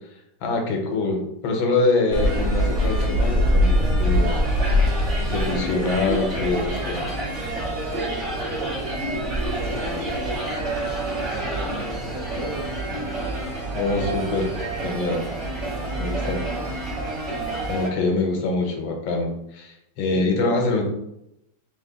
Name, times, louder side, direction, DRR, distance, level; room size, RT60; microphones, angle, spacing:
voice 1, 0.4-4.3 4.9-7.1 9.0-9.1 11.7-11.8 13.7-14.5 14.8-15.2 16.0-16.4 17.7-20.8, left 3 dB, 80° left, 2 dB, 1.5 m, -25 dB
sound 1, 2.1-17.9, equal, 45° right, 1.1 m, -25 dB
voice 2, 7.7-10.7 11.4-13.1 15.2-15.4 15.9-16.7 20.1-20.3, equal, 30° right, -6 dB, 1.4 m, -36 dB
3.4 x 2.9 x 3.8 m, 0.83 s
omnidirectional pair, 2.1 m